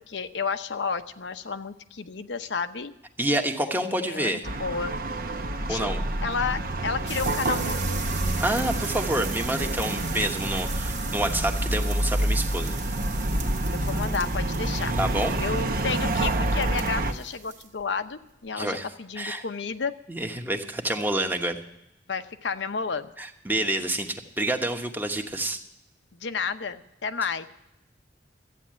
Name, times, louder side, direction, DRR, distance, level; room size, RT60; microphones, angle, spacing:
voice 1, 0.1-2.9 3.7-5.0 5.7-8.2 13.7-15.0 15.4-19.9 22.1-23.1 26.2-27.5, left 5 dB, 90° left, 9 dB, 0.8 m, -31 dB
voice 2, 3.2-4.4 5.7-6.0 8.4-12.8 15.0-15.3 18.6-18.9 19.2-19.4 20.1-21.6 23.2-25.6, right 1 dB, 10° right, 5 dB, 1.1 m, -28 dB
sound 1, 4.4-17.1, right 1 dB, 55° right, 0.9 m, -28 dB
sound 2, 7.1-17.8 18.1-18.4, right 6 dB, 90° right, 2.2 m, -40 dB
14.0 x 9.2 x 7.5 m, 0.87 s
head